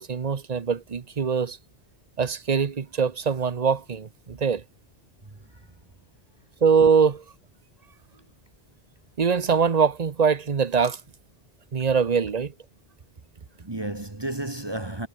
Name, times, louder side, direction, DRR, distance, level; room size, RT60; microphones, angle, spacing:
voice 1, 0.0-1.6 2.2-4.6 6.6-7.2 9.2-11.0 11.7-12.5, right 6 dB, 40° right, 1.0 m, -23 dB
voice 2, 5.2-5.8 13.5-15.1, right 1 dB, 25° right, 1.5 m, -33 dB
omnidirectional pair, 1.1 m